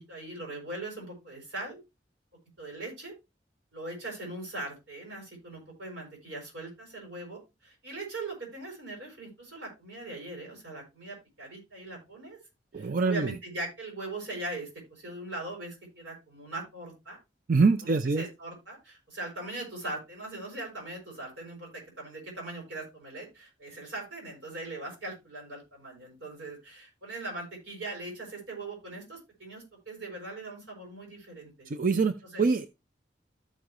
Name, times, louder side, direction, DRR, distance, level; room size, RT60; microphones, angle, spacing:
voice 1, 0.0-1.8 2.6-3.1 3.7-12.4 12.7-17.2 17.8-31.7 32.3-32.4, right 2 dB, 85° right, 0 dB, 5.8 m, -40 dB
voice 2, 12.7-13.3 17.5-18.2 31.7-32.7, right 4 dB, 50° right, 10 dB, 0.5 m, -25 dB
14.0 x 5.1 x 3.0 m, 0.24 s
head